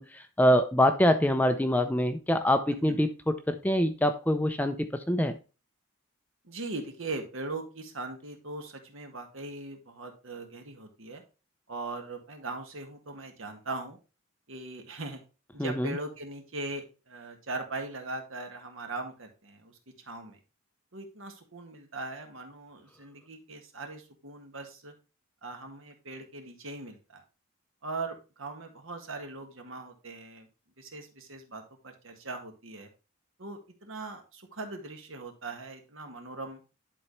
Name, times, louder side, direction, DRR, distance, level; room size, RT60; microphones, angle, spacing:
voice 1, 0.0-5.4 15.6-15.9, equal, 5° left, 0.5 m, -25 dB
voice 2, 6.4-11.2 11.7-14.0 14.5-15.2 15.5-20.4 20.9-24.9 25.4-27.2 27.8-30.5 30.8-32.9 33.4-36.6, right 2 dB, 65° right, 1.7 m, -40 dB
11.0 x 4.1 x 3.2 m
head